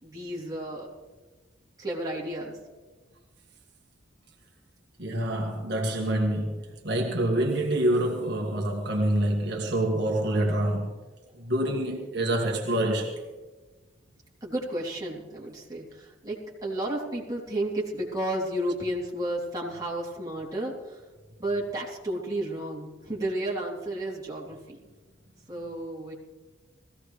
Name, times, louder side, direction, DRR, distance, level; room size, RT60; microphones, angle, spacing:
voice 1, 0.0-0.9 1.8-2.6 11.3-11.4 14.4-21.0 21.4-24.8 25.5-26.1, right 1 dB, 20° right, 3.2 m, -32 dB
voice 2, 5.0-11.0 11.4-13.2, right 1 dB, 60° right, 1.7 m, -26 dB
20.5 x 16.0 x 3.3 m
head